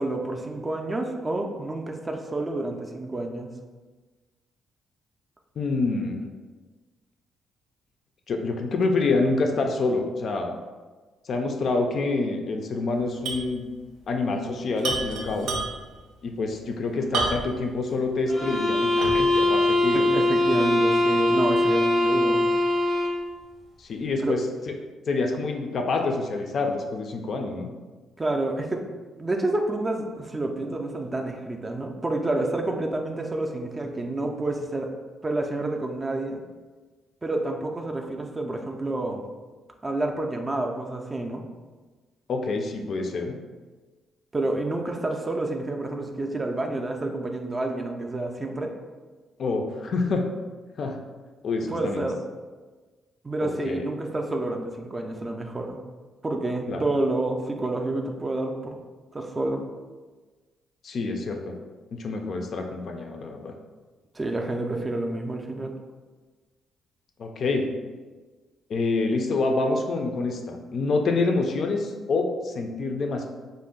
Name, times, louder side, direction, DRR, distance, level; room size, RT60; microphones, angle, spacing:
voice 1, 0.0-3.5 19.9-22.5 24.2-24.4 28.2-28.8 29.2-34.9 35.2-36.4 37.2-39.3 39.8-41.4 44.3-48.7 51.7-52.2 53.2-55.8 56.2-58.8 59.1-59.7 64.2-65.8, right 2 dB, 25° right, 3 dB, 0.3 m, -29 dB
voice 2, 5.6-6.2 8.3-10.5 11.2-13.6 14.1-15.5 16.2-20.0 23.8-24.4 25.1-27.7 42.3-43.3 49.4-50.2 50.8-51.0 51.4-52.1 53.4-53.9 56.7-56.8 60.8-61.5 61.9-63.5 67.2-67.7 68.7-73.2, left 3 dB, 55° left, 3 dB, 0.3 m, -27 dB
sound 1, 13.2-13.5 13.8-13.9 14.8-16.0 17.1-17.7 18.2-18.3 19.0-19.4, right 3 dB, 85° right, 0.5 m, -29 dB
sound 2, 18.3-23.3, left 2 dB, 5° right, 0.7 m, -22 dB
2.5 x 2.0 x 3.7 m, 1.3 s
cardioid pair, 90°, 0 cm